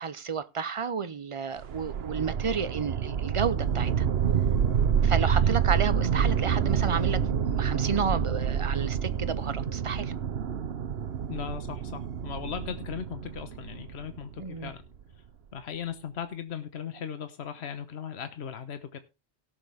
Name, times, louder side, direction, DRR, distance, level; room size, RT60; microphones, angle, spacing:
voice 1, 0.0-4.1 5.0-10.1 14.4-14.7, right 6 dB, 35° right, 0.6 m, -31 dB
sound 1, 1.6-14.7, right 7 dB, 65° right, 1.1 m, -28 dB
voice 2, 5.2-5.6 11.3-14.9 15.5-19.0, left 8 dB, 70° left, 1.3 m, -38 dB
17.0 x 7.1 x 3.5 m
omnidirectional pair, 1.1 m